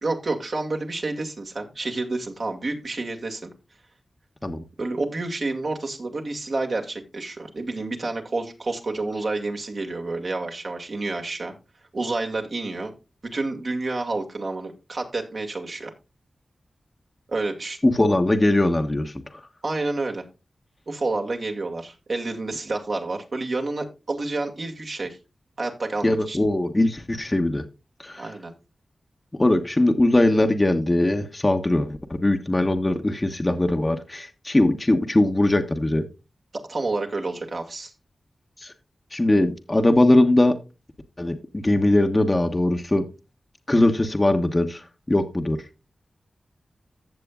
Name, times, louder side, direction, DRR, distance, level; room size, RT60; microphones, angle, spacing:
voice 1, 0.0-3.5 4.8-11.5 11.9-12.9 13.3-15.9 17.3-17.8 19.6-20.2 20.9-25.2 25.6-26.4 28.2-28.5 36.7-37.9, right 2 dB, 65° right, 3 dB, 2.1 m, -29 dB
voice 2, 17.8-19.4 26.0-27.6 28.0-28.3 29.4-36.1 38.6-38.7 39.1-40.6 41.2-43.1 43.7-45.6, left 1 dB, 30° left, 5 dB, 1.1 m, -21 dB
15.0 x 6.8 x 2.4 m, 0.29 s
cardioid pair, 45°, 0 cm